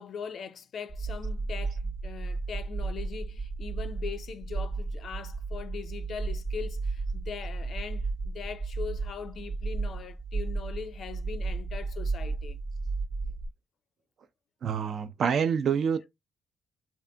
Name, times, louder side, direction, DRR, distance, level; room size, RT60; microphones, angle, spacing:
voice 1, 0.0-12.6, left 7 dB, 60° left, 0.4 m, -41 dB
sound 1, 0.9-13.5, right 3 dB, 25° right, 0.7 m, -33 dB
voice 2, 14.6-16.1, right 7 dB, 60° right, 0.4 m, -27 dB
2.6 x 2.5 x 2.2 m
cardioid pair, 90°, 0 cm